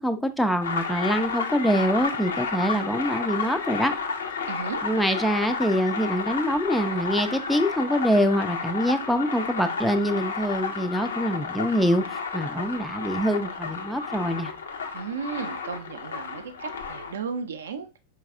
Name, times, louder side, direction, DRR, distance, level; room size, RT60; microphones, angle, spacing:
voice 1, 0.0-3.9 4.8-14.5, equal, ahead, 0.3 m, -25 dB
sound 1, 0.6-17.1, left 5 dB, 65° left, 0.5 m, -32 dB
voice 2, 4.5-4.8 14.9-17.9, right 5 dB, 65° right, 0.5 m, -34 dB
4.6 x 3.1 x 2.4 m
figure-of-eight pair, 90°, 0 cm